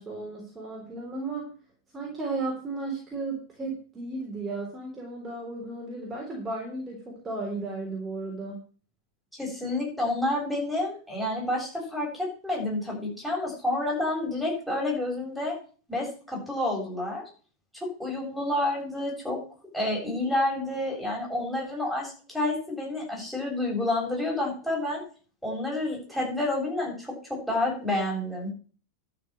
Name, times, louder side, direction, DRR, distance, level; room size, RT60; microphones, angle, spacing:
voice 1, 0.0-1.5 1.9-8.6, right 3 dB, 20° right, -1 dB, 3.8 m, -34 dB
voice 2, 9.4-15.5 15.9-17.2 17.8-19.4 19.7-25.0 25.4-28.5, left 1 dB, ahead, -2 dB, 7.8 m, -29 dB
12.0 x 6.5 x 7.9 m, 0.40 s
figure-of-eight pair, 90°, 0 cm